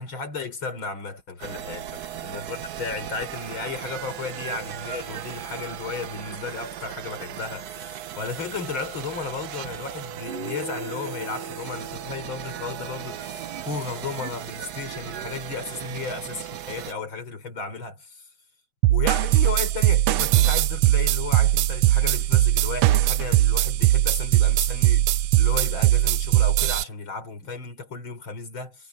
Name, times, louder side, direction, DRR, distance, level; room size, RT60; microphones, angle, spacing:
voice 1, 0.0-2.0 2.2-18.3 18.9-28.9, left 4 dB, 65° left, 5.1 m, -34 dB
sound 1, 1.4-16.9, right 11 dB, 60° right, 1.0 m, -37 dB
Guitar, 10.3-14.2, right 1 dB, 30° right, 1.4 m, -41 dB
sound 2, 18.8-26.8, right 15 dB, 85° right, 1.5 m, -20 dB
omnidirectional pair, 2.4 m